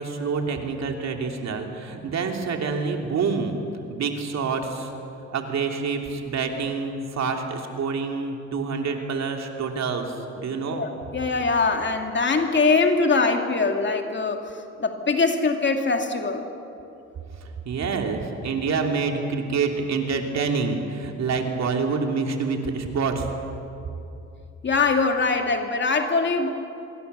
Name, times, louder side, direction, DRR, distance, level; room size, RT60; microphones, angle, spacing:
voice 1, 0.0-3.6 3.9-4.9 5.3-10.9 17.4-23.3, right 5 dB, 60° right, 3 dB, 3.1 m, -27 dB
voice 2, 10.7-14.4 14.8-16.4 24.6-26.5, left 4 dB, 40° left, 4 dB, 2.6 m, -22 dB
26.0 x 22.5 x 6.9 m, 2.8 s
cardioid pair, 90°, 30 cm